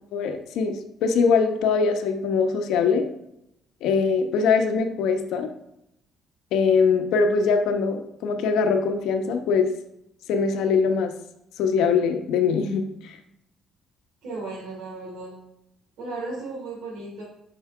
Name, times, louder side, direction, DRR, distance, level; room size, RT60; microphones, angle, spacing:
voice 1, 0.1-3.0 3.8-5.5 6.5-9.7 10.3-11.1 11.6-13.2, left 5 dB, 85° left, 5 dB, 0.9 m, -22 dB
voice 2, 14.2-15.4 16.0-17.2, right 3 dB, 85° right, -7 dB, 2.8 m, -35 dB
5.9 x 5.5 x 5.6 m, 0.83 s
cardioid pair, 150°, 0 cm